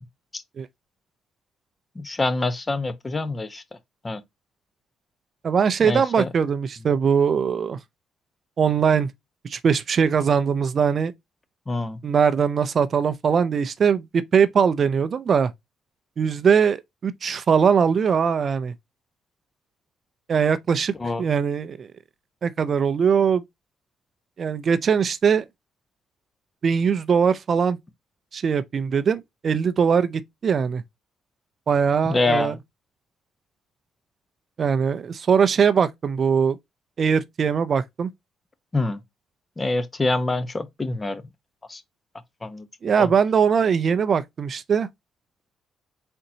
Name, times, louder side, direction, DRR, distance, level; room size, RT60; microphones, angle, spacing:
voice 1, 2.0-3.6 4.0-4.2 5.8-6.3 11.7-12.0 21.0-21.2 32.0-32.6 38.7-39.0 39.6-41.2 41.7-41.8 42.4-42.6 43.0-43.1, left 2 dB, 25° left, 0.9 m, -25 dB
voice 2, 5.4-7.8 8.6-9.1 9.4-11.1 12.0-15.5 16.2-18.7 20.3-20.9 21.2-21.9 22.4-23.4 24.4-25.4 26.6-27.8 28.3-30.8 31.7-32.6 34.6-36.6 37.0-38.1 42.8-44.9, right 6 dB, 50° right, 0.4 m, -21 dB
4.3 x 3.8 x 2.7 m
cardioid pair, 90°, 0 cm